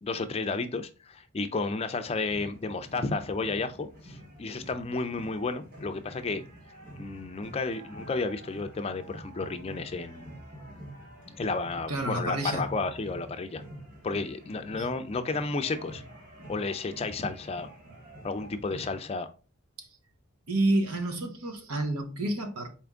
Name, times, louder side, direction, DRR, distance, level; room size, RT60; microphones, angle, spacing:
voice 1, 0.0-6.4 7.0-10.4 11.4-13.6 14.0-16.0 16.5-17.7 18.2-19.3, left 3 dB, 25° left, 0.3 m, -32 dB
sound 1, 2.2-19.0, right 1 dB, 40° right, 1.6 m, -47 dB
voice 2, 11.9-12.7 14.8-14.9 19.8-19.9 20.5-22.7, right 1 dB, 85° right, 0.9 m, -29 dB
4.3 x 3.5 x 3.5 m
head